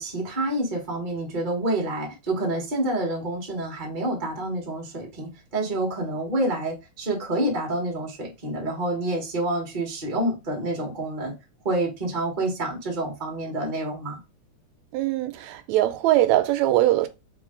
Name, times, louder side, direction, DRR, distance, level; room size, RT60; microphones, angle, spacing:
voice 1, 0.0-11.3 11.6-14.2, right 1 dB, 40° right, 0.6 m, -28 dB
voice 2, 14.9-17.1, right 14 dB, 80° right, 1.8 m, -21 dB
4.8 x 2.7 x 3.7 m
omnidirectional pair, 3.3 m